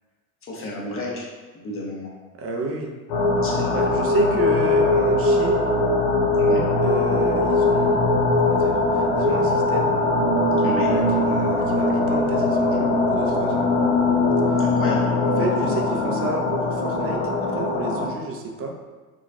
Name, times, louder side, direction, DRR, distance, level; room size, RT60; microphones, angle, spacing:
voice 1, 0.5-1.3 1.5-2.1 3.4-3.8 6.4-6.6 10.6-10.9 14.6-15.1, left 1 dB, 30° left, -3 dB, 1.0 m, -31 dB
voice 2, 2.3-2.9 3.7-5.6 6.8-8.0 8.4-9.9 10.8-13.7 15.2-18.8, right 3 dB, 35° right, 2 dB, 0.6 m, -30 dB
sound 1, 3.1-18.1, left 2 dB, 60° left, 0.7 m, -21 dB
4.0 x 2.3 x 2.3 m, 1.3 s
hypercardioid pair, 80°, 42 cm